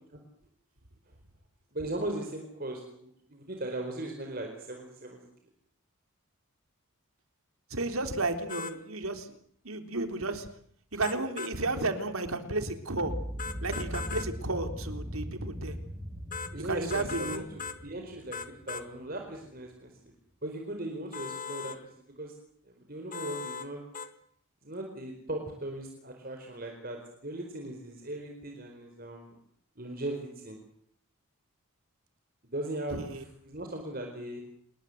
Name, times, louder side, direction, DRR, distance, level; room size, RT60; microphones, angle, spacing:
voice 1, 1.7-5.2 16.5-18.4 18.7-19.9 20.4-21.7 22.2-22.3 22.7-23.8 24.6-29.3 29.8-30.5 32.4-33.1 33.4-34.4, right 1 dB, 45° right, 3 dB, 4.6 m, -38 dB
voice 2, 7.7-9.3 9.6-10.5 10.9-13.1 13.6-15.8 16.6-17.5 32.9-33.2, right 2 dB, 80° right, 7 dB, 3.7 m, -33 dB
sound 1, 8.5-8.8 11.0-11.5 13.4-14.3 16.3-16.5 16.9-17.8 18.3-18.9 21.1-21.8 23.1-23.7 23.9-24.1, left 5 dB, 40° left, 1.9 m, -38 dB
sound 2, 13.0-19.1, equal, 15° right, 2.5 m, -39 dB
27.5 x 22.0 x 8.0 m, 0.64 s
head